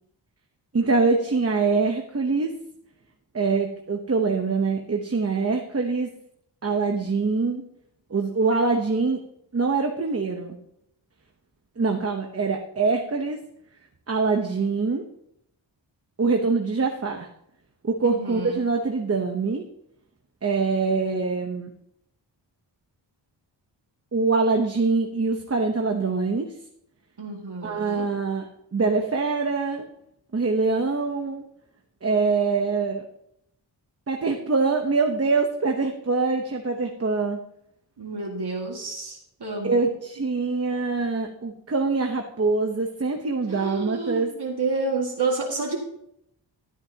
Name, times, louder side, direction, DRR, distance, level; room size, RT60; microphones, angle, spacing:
voice 1, 0.7-2.6 3.3-6.1 6.6-7.6 8.1-9.2 9.5-10.6 11.8-13.4 14.1-15.1 16.2-17.3 17.8-19.6 20.4-21.7 24.1-26.6 27.6-29.9 30.3-31.4 32.0-33.0 34.1-37.4 39.6-44.3, right 4 dB, 35° right, 3 dB, 0.9 m, -24 dB
voice 2, 18.0-18.6 27.2-28.1 38.0-39.8 43.5-45.8, right 3 dB, 60° right, -1 dB, 2.0 m, -29 dB
12.5 x 12.0 x 2.9 m, 0.76 s
wide cardioid pair, 120°, 45 cm